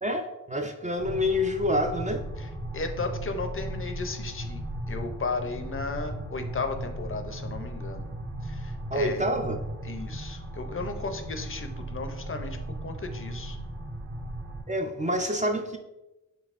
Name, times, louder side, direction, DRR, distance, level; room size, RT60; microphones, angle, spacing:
voice 1, 0.0-2.2 8.9-9.6 14.7-15.8, left 1 dB, 25° right, 4 dB, 0.4 m, -27 dB
sound 1, 1.0-14.6, right 1 dB, 40° right, 1.0 m, -37 dB
voice 2, 2.4-8.1 8.4-9.3 9.8-13.6, left 3 dB, 40° left, 6 dB, 0.5 m, -35 dB
5.3 x 3.2 x 2.4 m, 0.98 s
wide cardioid pair, 75°, 32 cm